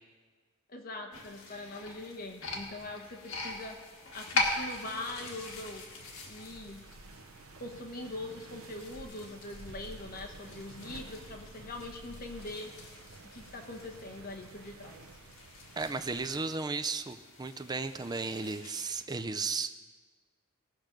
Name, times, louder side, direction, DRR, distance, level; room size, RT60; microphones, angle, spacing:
voice 1, 0.7-3.8 4.1-5.8 6.3-6.9 7.6-12.7 13.2-15.0, left 2 dB, 45° left, 3 dB, 1.1 m, -42 dB
sound 1, 1.1-19.0, left 3 dB, 75° left, 1.6 m, -42 dB
sound 2, 4.5-16.4, right 3 dB, 80° right, 0.7 m, -51 dB
voice 2, 15.8-19.7, right 4 dB, 20° right, 8 dB, 0.4 m, -34 dB
18.0 x 6.1 x 5.2 m, 1.4 s
head